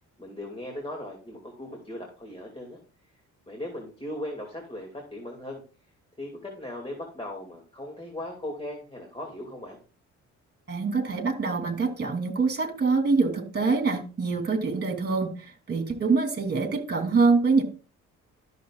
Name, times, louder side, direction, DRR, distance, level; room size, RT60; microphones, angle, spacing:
voice 1, 0.2-2.8 3.5-9.8, left 1 dB, 20° left, 0 dB, 2.4 m, -38 dB
voice 2, 10.7-17.6, right 4 dB, 35° right, 5 dB, 2.7 m, -25 dB
13.0 x 6.6 x 2.4 m, 0.36 s
cardioid pair, 90°, 30 cm